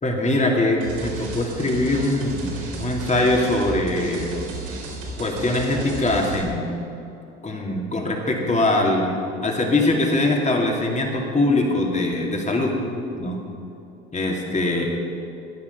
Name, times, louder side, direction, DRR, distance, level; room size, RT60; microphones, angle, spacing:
voice 1, 0.0-4.3 5.2-6.9 7.4-9.2 9.4-12.7 13.1-13.4 14.1-14.8, left 2 dB, 20° left, 0 dB, 2.7 m, -22 dB
sound 1, 0.8-6.4, right 2 dB, 70° right, 3.4 m, -34 dB
14.5 x 9.9 x 5.6 m, 2.7 s
hypercardioid pair, 70°, 32 cm